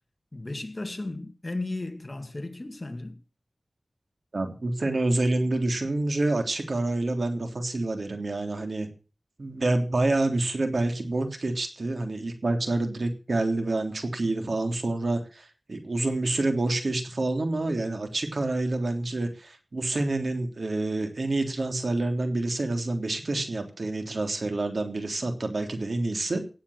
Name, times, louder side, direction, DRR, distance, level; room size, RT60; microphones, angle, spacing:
voice 1, 0.3-3.2, left 2 dB, 40° left, 2.0 m, -35 dB
voice 2, 4.3-8.9 9.4-26.4, right 2 dB, 75° right, 3.3 m, -27 dB
17.0 x 8.5 x 6.5 m
wide cardioid pair, 55°, 0 cm